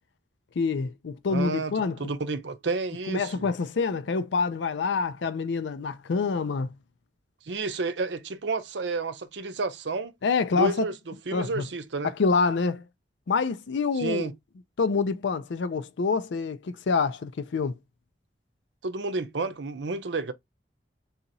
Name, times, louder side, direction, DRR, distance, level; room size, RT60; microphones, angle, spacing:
voice 1, 0.6-2.0 3.1-6.7 10.2-10.9 11.3-11.7 12.0-12.8 13.3-14.3 14.8-17.8, left 4 dB, 85° left, 0.5 m, -26 dB
voice 2, 1.3-1.7 2.0-3.5 7.5-10.1 10.5-10.9 11.3-12.1 14.0-14.3 18.8-20.3, right 3 dB, 80° right, 0.7 m, -30 dB
4.0 x 2.9 x 4.0 m
head